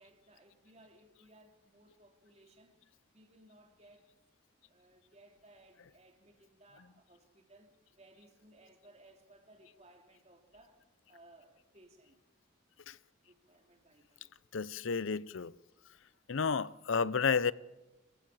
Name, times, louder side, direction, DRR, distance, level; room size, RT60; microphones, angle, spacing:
voice 1, 0.0-2.8 3.1-4.1 4.7-12.2 13.2-14.4 14.8-14.9, right 1 dB, 30° right, 2.8 m, -62 dB
voice 2, 14.5-15.5 16.3-17.5, left 5 dB, 75° left, 0.6 m, -31 dB
25.0 x 15.5 x 7.3 m
head